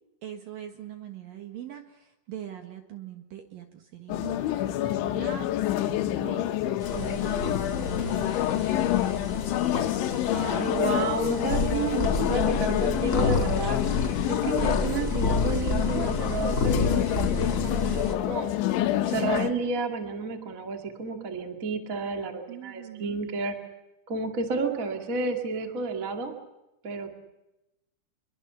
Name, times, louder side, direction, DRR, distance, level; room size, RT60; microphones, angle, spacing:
voice 1, 0.2-4.4 4.6-6.8 7.2-7.5 8.0-8.3 8.7-9.0 12.1-12.9 22.5-23.2, right 10 dB, 60° right, 6 dB, 2.8 m, -42 dB
sound 1, 4.1-19.5, left 13 dB, 85° left, 3.6 m, -27 dB
sound 2, 6.8-18.1, left 3 dB, 40° left, 1.1 m, -30 dB
voice 2, 6.9-7.3 10.3-18.5 19.1-23.6 24.1-26.3 26.8-27.1, right 3 dB, 30° right, 5 dB, 1.5 m, -31 dB
26.5 x 23.0 x 7.0 m, 0.95 s
omnidirectional pair, 5.3 m